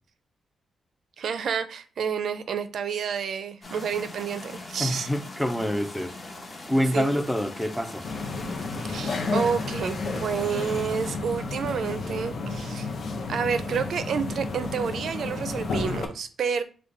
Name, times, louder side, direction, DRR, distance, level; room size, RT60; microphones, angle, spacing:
voice 1, 1.2-5.1 6.8-7.1 8.9-12.9 13.3-16.6, right 6 dB, 65° right, 0.4 m, -29 dB
sound 1, 3.6-11.2, left 2 dB, 25° left, 1.0 m, -41 dB
voice 2, 4.8-6.1 6.7-8.1, equal, 5° left, 0.5 m, -26 dB
sound 2, 8.0-16.1, left 3 dB, 50° left, 0.7 m, -31 dB
5.0 x 2.2 x 3.8 m
wide cardioid pair, 145°, 0 cm